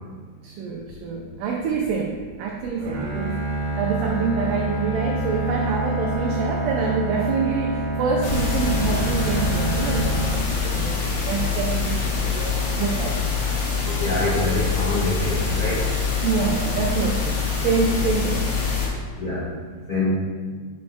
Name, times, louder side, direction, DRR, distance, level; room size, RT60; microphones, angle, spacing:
voice 1, 0.4-3.4 3.8-13.4 13.7-14.0 16.2-18.4, right 5 dB, 85° right, 0 dB, 1.9 m, -26 dB
Bowed string instrument, 2.8-11.0, right 2 dB, 70° right, 2.4 m, -27 dB
sound 1, 8.2-18.9, left 5 dB, 70° left, 3.0 m, -25 dB
voice 2, 13.8-15.8 19.2-19.4 19.9-20.1, left 2 dB, 55° left, -11 dB, 1.5 m, -25 dB
10.5 x 5.5 x 2.2 m, 1.5 s
omnidirectional pair, 4.4 m